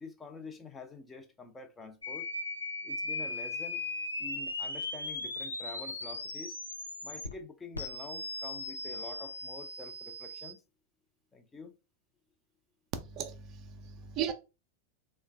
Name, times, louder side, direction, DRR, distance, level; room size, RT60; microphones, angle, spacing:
voice 1, 0.0-2.3 2.8-3.8 4.2-6.6 7.0-10.6 11.3-11.7, left 3 dB, 15° left, 0.5 m, -47 dB
sound 1, 2.0-7.3 7.7-10.5, left 2 dB, 80° left, 0.5 m, -38 dB
voice 2, 13.2-14.3, right 9 dB, 35° right, 0.4 m, -36 dB
3.2 x 2.2 x 3.3 m
figure-of-eight pair, 90°, 0 cm